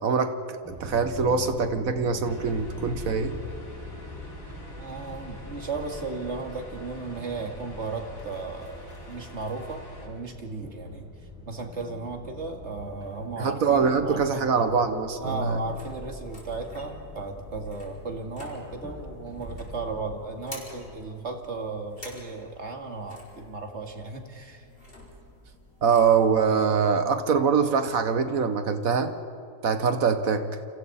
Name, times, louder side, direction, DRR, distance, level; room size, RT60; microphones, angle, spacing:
voice 1, 0.0-3.4 13.4-15.6 25.8-29.1 29.6-30.5, right 5 dB, 60° right, 9 dB, 1.6 m, -24 dB
sound 1, 0.6-20.2, left 1 dB, ahead, 6.1 m, -43 dB
sound 2, 2.2-10.1, equal, 90° left, 4.7 m, -45 dB
voice 2, 4.8-11.1 11.5-14.5 15.2-24.7, right 3 dB, 45° right, 4 dB, 2.3 m, -35 dB
sound 3, 15.3-26.9, left 1 dB, 35° left, 4.5 m, -48 dB
29.5 x 26.5 x 4.2 m, 2.6 s
omnidirectional pair, 1.7 m